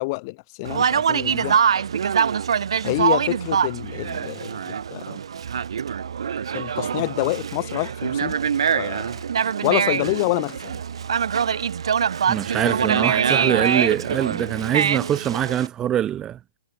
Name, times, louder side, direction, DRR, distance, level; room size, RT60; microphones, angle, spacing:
voice 1, 0.0-1.6 2.8-5.2 6.5-8.4 8.7-9.2 9.6-10.8, left 26 dB, 40° left, 6.2 m, -27 dB
Conversation, 0.6-15.7, right 7 dB, 70° right, 2.0 m, -24 dB
voice 2, 12.3-16.4, right 10 dB, 20° right, 1.0 m, -23 dB
hypercardioid pair, 120°, 3 cm